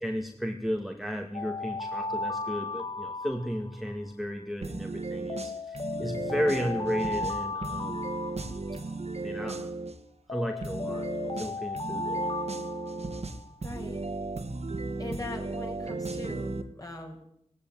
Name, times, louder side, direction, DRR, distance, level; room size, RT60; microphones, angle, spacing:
voice 1, 0.0-8.0 9.2-9.7 10.3-11.1 11.4-12.4, equal, ahead, 4 dB, 2.2 m, -33 dB
Alarm, 1.3-4.0 5.3-9.0 10.3-13.5, left 3 dB, 45° left, 1.4 m, -35 dB
sound 1, 4.6-10.0 10.6-16.6, right 3 dB, 60° right, 2.2 m, -35 dB
voice 2, 13.6-14.0 15.0-17.2, left 2 dB, 30° left, 3 dB, 6.3 m, -40 dB
19.0 x 17.0 x 9.6 m, 0.73 s
wide cardioid pair, 75°, 12 cm